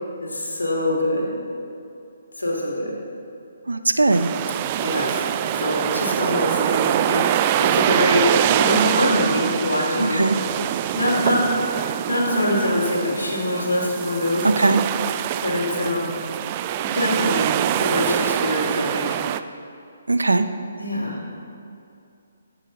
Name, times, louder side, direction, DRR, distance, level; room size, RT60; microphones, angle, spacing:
voice 1, 0.2-1.3 2.4-2.9 4.8-5.2 5.5-8.2 8.6-10.3 10.9-11.4 12.1-14.5 15.4-16.1 16.9-19.2 20.8-21.2, left 1 dB, 85° left, -2 dB, 3.0 m, -24 dB
voice 2, 3.7-4.3 10.0-10.4 14.6-14.8 20.1-20.5, right 3 dB, 85° right, 9 dB, 0.7 m, -19 dB
sound 1, 4.1-19.4, right 11 dB, 35° right, 0.4 m, -24 dB
15.0 x 8.2 x 4.1 m, 2.6 s
figure-of-eight pair, 140°, 0 cm